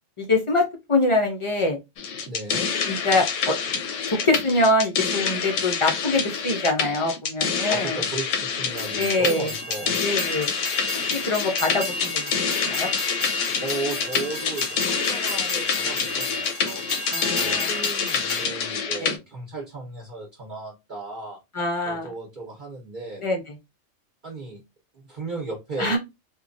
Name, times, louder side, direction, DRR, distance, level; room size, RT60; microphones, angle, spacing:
voice 1, 0.2-1.8 2.9-3.5 4.1-8.0 9.0-9.5 10.0-10.5 11.1-12.3 12.6-12.9 17.1-17.7 19.0-19.1 21.5-22.1 23.2-23.5 25.8-26.0, left 2 dB, 50° left, 1 dB, 0.3 m, -24 dB
sound 1, 2.0-19.2, left 6 dB, 90° left, 0.9 m, -27 dB
voice 2, 2.3-2.7 7.7-10.0 13.6-16.8 17.2-21.4 21.8-23.2 24.2-24.6 24.9-26.0, right 3 dB, 45° right, -1 dB, 0.8 m, -35 dB
Train, 8.7-18.5, left 1 dB, 15° left, 0.7 m, -32 dB
2.9 x 2.2 x 2.5 m, 0.23 s
omnidirectional pair, 1.3 m